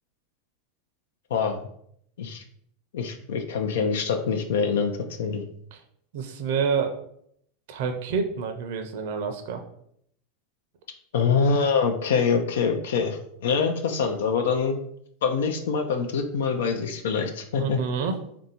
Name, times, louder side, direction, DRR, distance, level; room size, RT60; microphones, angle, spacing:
voice 1, 1.3-1.6 2.2-2.4 2.9-4.9 5.2-5.4 11.1-14.8 15.2-17.8, left 5 dB, 85° left, 5 dB, 0.5 m, -25 dB
voice 2, 6.1-7.0 7.7-9.6 17.6-18.2, right 6 dB, 70° right, 5 dB, 0.5 m, -28 dB
3.5 x 2.6 x 4.2 m, 0.69 s
hypercardioid pair, 110°, 0 cm